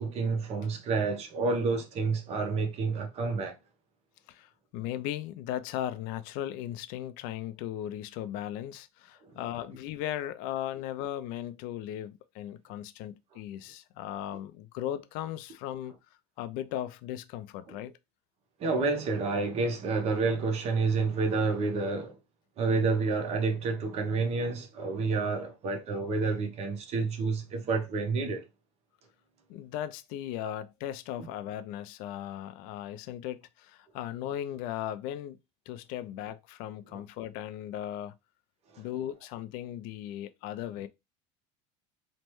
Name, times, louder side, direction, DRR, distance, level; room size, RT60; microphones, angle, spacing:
voice 1, 0.0-3.6 17.7-17.8 18.6-22.1 22.6-28.4, right 4 dB, 45° right, 0.8 m, -29 dB
voice 2, 4.3-15.9 16.4-17.9 29.5-35.4 35.7-38.2 38.8-40.9, left 11 dB, 65° left, 0.4 m, -37 dB
3.1 x 2.1 x 3.0 m
supercardioid pair, 110°, 15 cm